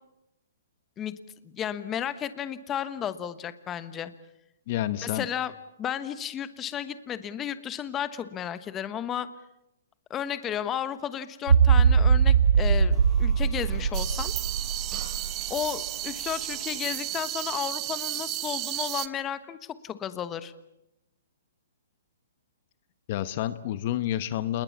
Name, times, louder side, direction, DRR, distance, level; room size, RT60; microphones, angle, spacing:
voice 1, 1.0-4.1 5.0-9.3 10.1-14.3 15.5-20.5, left 9 dB, 20° left, 12 dB, 1.2 m, -33 dB
voice 2, 4.7-5.3 23.1-24.6, left 12 dB, 45° left, 14 dB, 1.0 m, -29 dB
sound 1, 11.5-15.6, right 6 dB, 85° right, 1.4 m, -21 dB
sound 2, 12.7-17.2, right 1 dB, 10° right, 6.1 m, -51 dB
sound 3, 13.9-19.1, right 16 dB, 25° right, 0.9 m, -33 dB
28.0 x 21.0 x 7.2 m, 0.86 s
hypercardioid pair, 150°, 0 cm